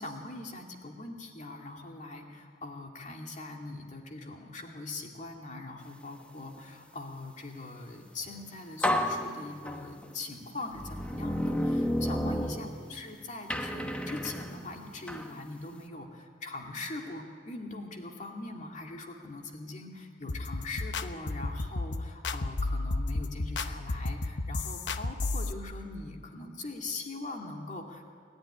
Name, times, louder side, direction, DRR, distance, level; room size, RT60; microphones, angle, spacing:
voice 1, 0.0-28.0, left 2 dB, 40° left, 2 dB, 2.5 m, -42 dB
sound 1, 8.3-8.4 8.8-10.1 10.7-13.1 13.5-15.3, equal, 5° left, 1.3 m, -31 dB
sound 2, 20.3-25.5, left 2 dB, 70° left, 0.9 m, -32 dB
29.5 x 12.5 x 10.0 m, 2.1 s
head